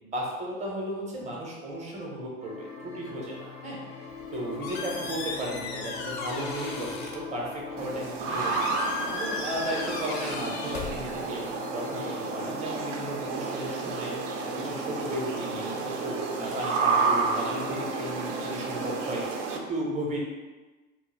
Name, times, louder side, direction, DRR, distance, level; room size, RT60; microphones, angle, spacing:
voice 1, 0.0-3.8 4.3-8.8 9.1-11.4 11.7-14.1 14.6-15.8 16.0-19.4 19.7-20.2, right 1 dB, 15° right, -2 dB, 0.6 m, -35 dB
sound 1, 2.4-19.2, left 4 dB, 85° left, 0.8 m, -41 dB
Squeak, 4.1-11.6, left 4 dB, 50° left, 0.5 m, -37 dB
sound 2, 7.8-19.6, right 5 dB, 65° right, 0.5 m, -31 dB
2.1 x 2.0 x 3.1 m, 1.2 s
hypercardioid pair, 90°, 41 cm